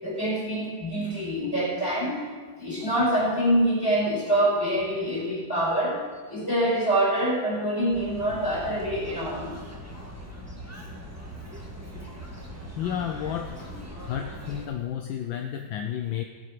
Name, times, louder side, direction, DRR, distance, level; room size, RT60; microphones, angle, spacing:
voice 1, 0.0-2.2 2.6-9.6, right 1 dB, 10° left, -5 dB, 4.9 m, -25 dB
sound 1, 7.9-14.6, equal, 10° right, 1.4 m, -40 dB
voice 2, 12.8-16.2, left 9 dB, 70° left, 5 dB, 1.4 m, -32 dB
18.0 x 8.4 x 5.0 m, 1.4 s
omnidirectional pair, 2.4 m